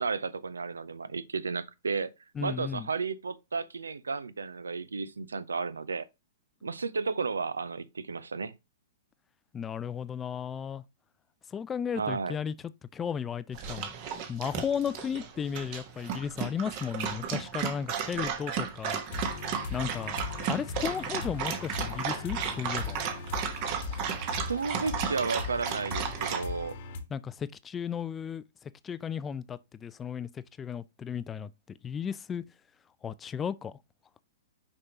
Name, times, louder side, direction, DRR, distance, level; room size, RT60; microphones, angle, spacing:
voice 1, 0.0-2.1 2.4-6.1 6.6-8.5 11.9-12.4 24.5-26.8, right 4 dB, 75° right, 0.5 m, -33 dB
voice 2, 2.4-2.9 9.5-10.8 11.5-12.5 12.9-13.9 14.3-19.0 19.7-20.2 20.5-23.0 27.1-31.5 31.8-32.4 33.0-33.8, left 7 dB, 20° left, 0.4 m, -34 dB
Dog, 13.5-26.4, right 7 dB, 40° right, 1.3 m, -34 dB
sound 1, 19.1-27.0, left 5 dB, 50° left, 1.1 m, -39 dB
6.4 x 5.3 x 2.9 m
figure-of-eight pair, 110°, 0 cm